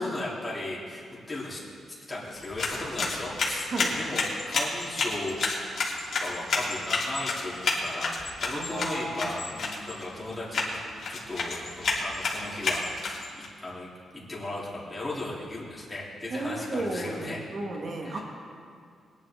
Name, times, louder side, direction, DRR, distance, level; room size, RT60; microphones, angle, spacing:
voice 1, 0.0-1.6 2.1-5.4 6.2-10.8 11.1-17.4 18.0-18.2, left 2 dB, 15° left, -6 dB, 3.5 m, -36 dB
sound 1, 2.3-13.5, left 3 dB, 55° left, 2.9 m, -31 dB
voice 2, 8.5-9.3 16.3-18.2, right 2 dB, 50° right, 0 dB, 2.0 m, -33 dB
21.5 x 10.5 x 3.8 m, 2.2 s
cardioid pair, 135°, 0 cm